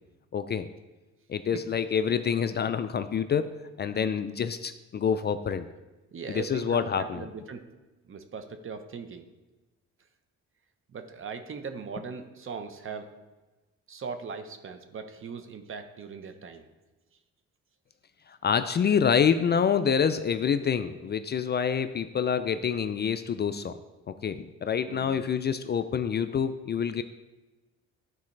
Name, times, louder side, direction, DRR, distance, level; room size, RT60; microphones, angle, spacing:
voice 1, 0.3-0.7 1.3-3.5 3.8-5.6 6.3-7.2 18.3-23.7 24.2-27.0, left 7 dB, 35° left, 11 dB, 0.4 m, -27 dB
voice 2, 6.1-7.6 8.1-9.2 10.9-13.1 13.9-16.6 24.9-25.2, right 5 dB, 45° right, 7 dB, 0.8 m, -39 dB
12.0 x 4.1 x 3.2 m, 1.1 s
cardioid pair, 90°, 30 cm